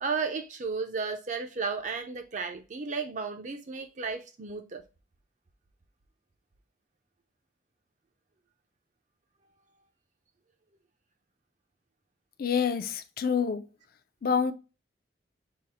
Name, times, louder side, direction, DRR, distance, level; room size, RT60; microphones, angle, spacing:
voice 1, 0.0-4.8, right 4 dB, 40° right, 0.5 m, -33 dB
voice 2, 12.4-13.7 14.2-14.5, left 6 dB, 55° left, 0.4 m, -27 dB
3.8 x 2.1 x 4.1 m
head